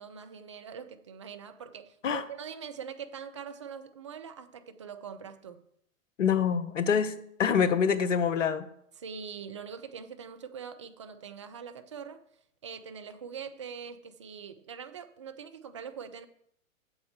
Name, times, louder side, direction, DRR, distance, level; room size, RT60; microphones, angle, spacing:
voice 1, 0.0-5.6 9.0-12.2 12.6-16.3, right 7 dB, 25° right, 0.3 m, -43 dB
voice 2, 6.2-7.1 7.4-8.7, left 7 dB, 65° left, 0.9 m, -25 dB
8.3 x 7.2 x 4.6 m
figure-of-eight pair, 105°, 41 cm